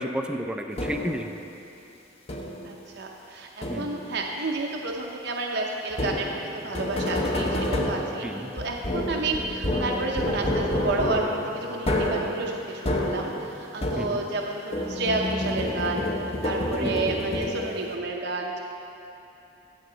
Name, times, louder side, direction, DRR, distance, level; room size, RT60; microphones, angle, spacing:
voice 1, 0.0-1.3 3.7-3.9 8.2-8.5 14.0-14.2 16.8-17.0, equal, 5° right, 4 dB, 0.4 m, -31 dB
sound 1, 0.8-1.3 2.3-2.8 3.6-4.2 5.9-14.4 14.7-17.9, left 1 dB, 35° left, 0.9 m, -29 dB
voice 2, 2.6-6.3 6.5-18.6, right 3 dB, 60° right, 0 dB, 0.7 m, -31 dB
15.5 x 6.6 x 3.9 m, 2.9 s
head